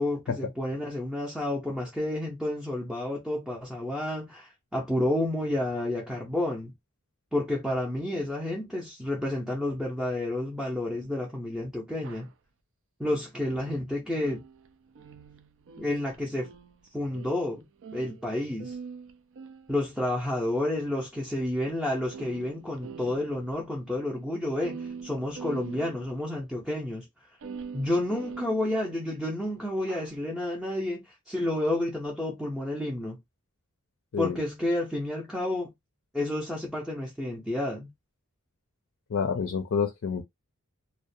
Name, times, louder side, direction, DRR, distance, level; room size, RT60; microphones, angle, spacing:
voice 1, 0.0-6.7 7.3-12.3 13.0-14.4 15.8-16.5 16.9-17.7 17.9-18.7 19.7-27.1 27.7-33.2 34.2-35.7 36.1-37.9, left 1 dB, ahead, 0.5 m, -30 dB
sound 1, 12.0-12.3 14.2-18.3 18.6-20.1 21.0-21.1 21.7-21.8 22.0-23.6 23.9-24.0 24.2-24.3 24.5-26.2 27.4-29.2 29.8-30.2, right 5 dB, 60° right, 0.4 m, -43 dB
voice 2, 39.1-40.2, left 6 dB, 55° left, 0.4 m, -28 dB
2.4 x 2.1 x 2.6 m
head